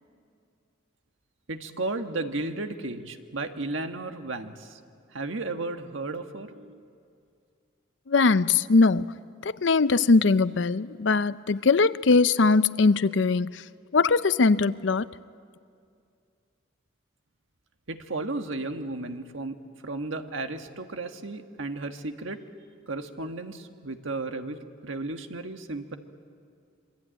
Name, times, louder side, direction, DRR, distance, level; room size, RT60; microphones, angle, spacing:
voice 1, 1.5-4.8 5.1-6.8 17.9-19.6 19.8-22.4 22.9-26.0, right 2 dB, 75° right, 1.5 m, -34 dB
voice 2, 8.1-9.0 9.4-13.5 13.9-15.1, left 4 dB, 65° left, 0.6 m, -21 dB
26.5 x 24.0 x 9.0 m
head